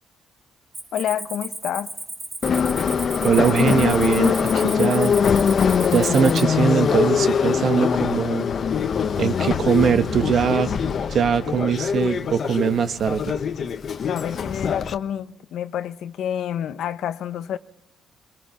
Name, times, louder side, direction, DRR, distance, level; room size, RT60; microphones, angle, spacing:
Cricket, 0.7-6.4, right 2 dB, 25° right, 2.0 m, -35 dB
voice 1, 0.9-1.9 14.0-17.6, left 10 dB, 75° left, 0.9 m, -28 dB
Subway metro underground, 2.4-14.9, left 6 dB, 55° left, 1.1 m, -22 dB
voice 2, 3.2-5.2 5.9-8.5 9.2-10.7 11.1-13.4, right 7 dB, 60° right, 1.3 m, -21 dB
22.5 x 21.0 x 5.8 m
cardioid pair, 90°, 0 cm